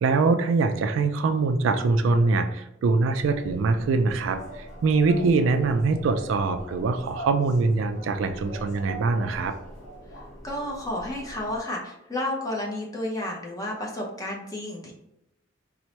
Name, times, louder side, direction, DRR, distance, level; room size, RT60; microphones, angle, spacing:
voice 1, 0.0-9.6, right 4 dB, 70° right, 9 dB, 0.3 m, -23 dB
sound 1, 3.2-11.6, right 1 dB, 75° left, 0.9 m, -42 dB
voice 2, 10.4-14.9, left 1 dB, 20° left, -2 dB, 0.7 m, -31 dB
4.3 x 2.0 x 2.9 m, 0.85 s
head